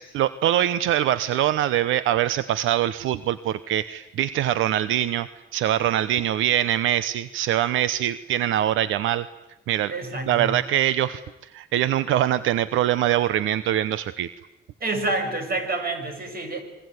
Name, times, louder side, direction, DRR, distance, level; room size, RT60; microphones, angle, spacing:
voice 1, 0.0-9.3 9.7-9.9 10.3-14.3, right 12 dB, 85° right, 15 dB, 0.9 m, -23 dB
voice 2, 9.9-10.6 14.8-16.6, right 2 dB, 50° right, 7 dB, 7.1 m, -28 dB
26.5 x 22.5 x 9.6 m, 0.94 s
cardioid pair, 90°, 20 cm